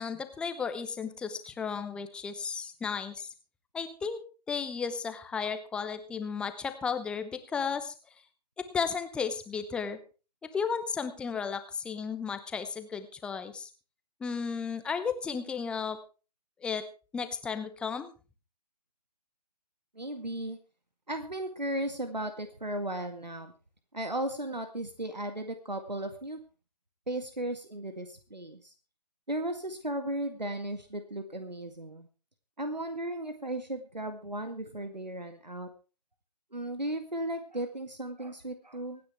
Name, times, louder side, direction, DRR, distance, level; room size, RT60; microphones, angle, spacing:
voice 1, 0.0-3.3 3.7-4.2 4.5-7.9 8.6-10.0 10.5-13.7 14.2-16.0 16.6-16.8 17.1-18.1, left 6 dB, 5° left, 10 dB, 0.8 m, -34 dB
voice 2, 20.0-20.6 21.1-23.5 23.9-26.4 27.1-28.7 29.3-32.1 32.6-35.7 36.5-39.0, right 1 dB, 90° right, 8 dB, 2.0 m, -35 dB
25.5 x 9.6 x 3.4 m, 0.34 s
figure-of-eight pair, 140°, 21 cm